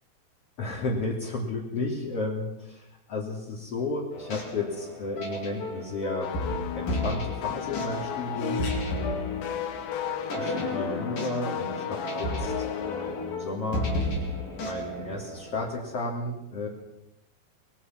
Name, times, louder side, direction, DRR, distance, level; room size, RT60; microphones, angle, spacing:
voice 1, 0.6-6.3 6.7-9.5 10.3-14.3 14.6-16.7, left 2 dB, 35° left, -3 dB, 3.9 m, -33 dB
sound 1, 4.1-15.7, left 1 dB, 50° left, 6.2 m, -33 dB
sound 2, 6.2-13.4, left 8 dB, 75° left, 4.2 m, -34 dB
25.5 x 22.0 x 6.2 m, 0.88 s
omnidirectional pair, 5.2 m